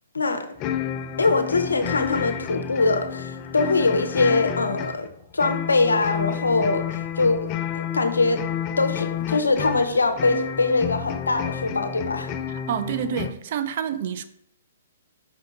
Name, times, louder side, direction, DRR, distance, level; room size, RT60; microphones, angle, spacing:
voice 1, 0.1-0.5 1.2-5.1 5.3-8.4 8.8-12.3, left 3 dB, 90° left, 0.6 m, -23 dB
sound 1, 0.6-13.3, left 9 dB, 30° left, 0.3 m, -30 dB
voice 2, 12.5-14.3, right 9 dB, 55° right, 0.4 m, -28 dB
5.1 x 2.7 x 3.8 m
hypercardioid pair, 130°, 0 cm